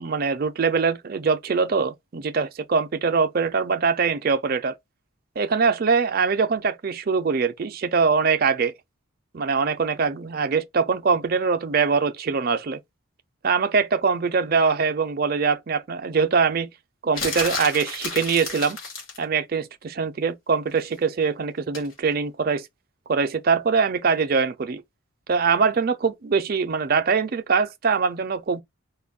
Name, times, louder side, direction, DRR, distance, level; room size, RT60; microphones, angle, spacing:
voice 1, 0.0-4.8 5.4-8.7 9.3-12.8 13.4-16.7 17.0-18.8 19.2-22.7 23.1-24.8 25.3-28.6, right 5 dB, 45° right, 0.4 m, -23 dB
sound 1, 17.2-19.2 21.7-21.9, left 4 dB, 70° left, 1.9 m, -31 dB
4.3 x 2.2 x 3.6 m
head